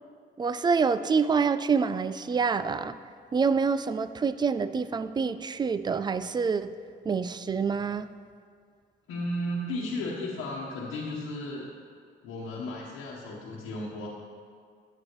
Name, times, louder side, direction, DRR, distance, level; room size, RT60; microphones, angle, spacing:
voice 1, 0.4-3.0 3.3-6.7 7.0-8.1, right 5 dB, 20° right, 13 dB, 0.3 m, -26 dB
voice 2, 9.1-11.7 12.2-14.1, left 1 dB, 85° left, -6 dB, 1.1 m, -34 dB
11.5 x 7.9 x 3.1 m, 2.1 s
cardioid pair, 90°, 20 cm